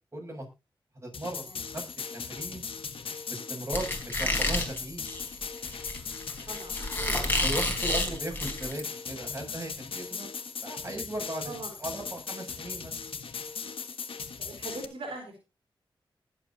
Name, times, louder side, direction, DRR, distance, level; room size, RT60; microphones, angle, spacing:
voice 1, 0.1-0.5 1.0-1.8 2.1-2.6 3.3-5.1 7.4-10.3 10.6-11.5 11.8-13.0, right 1 dB, 30° right, 0 dB, 7.6 m, -37 dB
sound 1, 1.1-14.8, left 5 dB, 80° left, 1.4 m, -38 dB
voice 2, 1.3-1.6 2.3-2.5 6.5-7.2 11.4-11.7 14.4-15.4, right 2 dB, 80° right, 0 dB, 4.2 m, -41 dB
Squeak, 3.7-8.8, left 1 dB, 20° left, 4.3 m, -30 dB
21.0 x 8.1 x 2.8 m, 0.27 s
cardioid pair, 65°, 9 cm